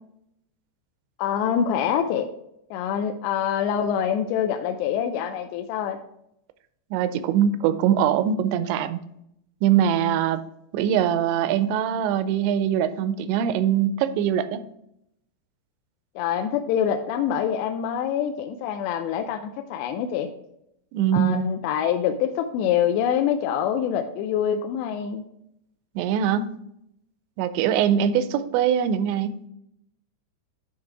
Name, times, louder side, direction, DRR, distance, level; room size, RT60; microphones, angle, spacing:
voice 1, 1.2-2.3 2.7-6.0 16.2-20.3 21.1-25.2, left 9 dB, 85° left, 5 dB, 2.6 m, -25 dB
voice 2, 6.9-9.0 9.6-10.4 10.7-14.6 20.9-21.5 26.0-26.5 27.4-29.4, right 9 dB, 85° right, 12 dB, 2.8 m, -22 dB
9.5 x 3.3 x 4.5 m, 0.76 s
omnidirectional pair, 5.0 m